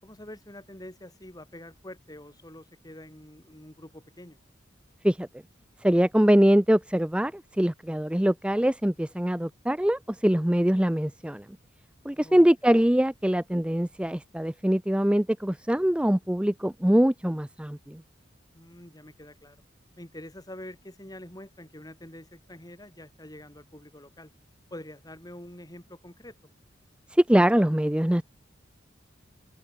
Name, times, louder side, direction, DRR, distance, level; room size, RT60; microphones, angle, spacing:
voice 1, 0.0-4.4 12.1-12.5 18.5-19.6 20.0-24.3 24.7-26.3, left 1 dB, 20° left, 7.0 m, -46 dB
voice 2, 5.8-11.4 12.1-18.0 27.1-28.2, equal, 5° right, 0.5 m, -23 dB
open air
head